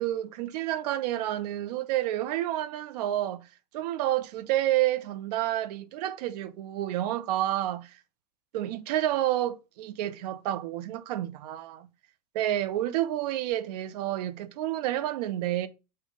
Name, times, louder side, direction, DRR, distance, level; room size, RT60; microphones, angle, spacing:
voice 1, 0.0-3.4 3.7-7.9 8.5-11.9 12.3-15.7, right 13 dB, 70° right, 0.7 m, -29 dB
6.5 x 3.0 x 5.0 m
hypercardioid pair, 100°, 21 cm